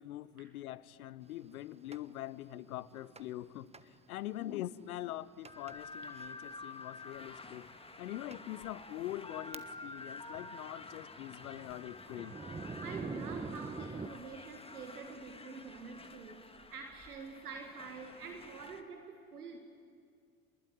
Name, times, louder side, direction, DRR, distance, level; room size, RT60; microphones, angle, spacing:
voice 1, 0.0-3.7 4.1-7.7 8.0-12.4, left 14 dB, 75° left, 18 dB, 0.9 m, -43 dB
Thunder, 1.9-2.0 3.2-3.4 3.7-3.9 4.5-4.6 5.4-5.8 6.1-6.3 7.2-7.3 7.9-8.0 8.3-8.4 9.0-10.0 10.3-14.1, right 4 dB, 15° right, 1.1 m, -45 dB
sound 1, 5.4-18.8, left 3 dB, 10° left, 1.8 m, -50 dB
voice 2, 12.8-19.6, right 4 dB, 85° right, 5 dB, 1.9 m, -47 dB
29.0 x 20.5 x 9.5 m, 2.2 s
figure-of-eight pair, 65°, 44 cm